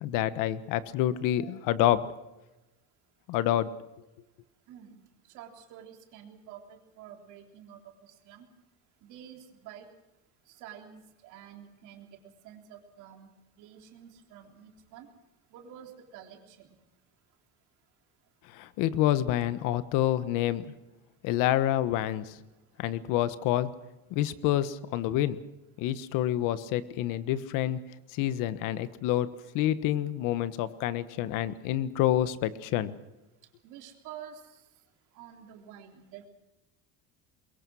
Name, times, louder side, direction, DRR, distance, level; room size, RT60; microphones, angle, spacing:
voice 1, 0.0-2.1 3.3-3.7 18.5-20.6 21.2-22.4 22.8-23.7 24.1-25.4 25.8-27.8 28.1-32.9, left 12 dB, 75° left, 14 dB, 1.3 m, -28 dB
voice 2, 4.7-8.5 9.0-9.9 10.5-15.1 15.5-16.7 33.6-34.6 35.1-36.3, right 9 dB, 65° right, 3 dB, 3.6 m, -49 dB
23.0 x 22.5 x 6.3 m, 0.99 s
cardioid pair, 170°, 32 cm